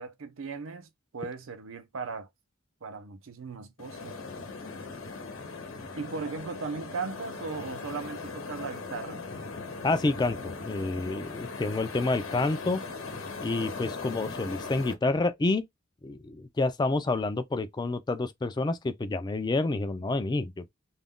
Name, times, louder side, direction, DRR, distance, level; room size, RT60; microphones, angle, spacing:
voice 1, 0.0-2.3 2.8-4.2 5.9-9.2, right 4 dB, 80° right, 0.6 m, -37 dB
sound 1, 3.8-14.9, left 4 dB, 75° left, 0.9 m, -39 dB
voice 2, 9.8-12.8 13.4-15.6 16.0-20.6, left 2 dB, 20° left, 0.3 m, -28 dB
2.4 x 2.2 x 3.6 m
head